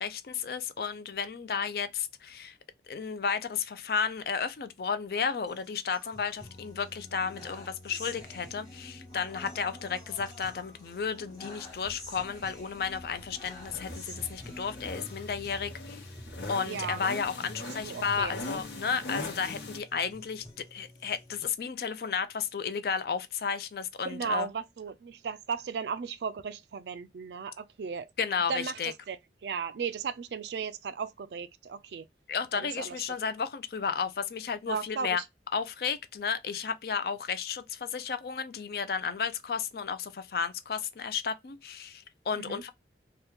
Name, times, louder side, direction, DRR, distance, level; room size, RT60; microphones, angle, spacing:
voice 1, 0.0-2.5 2.9-16.0 16.5-20.4 20.7-24.5 28.2-28.9 32.3-35.2 35.5-42.7, left 6 dB, 55° left, 0.4 m, -33 dB
sound 1, 5.5-21.5, left 1 dB, 25° left, 1.2 m, -49 dB
sound 2, 11.6-19.8, left 1 dB, 80° left, 0.9 m, -42 dB
voice 2, 16.7-17.0 17.6-18.3 24.0-28.1 28.5-32.1 32.5-33.0 34.7-35.2 42.3-42.6, right 6 dB, 75° right, 0.4 m, -36 dB
2.9 x 2.3 x 3.4 m
head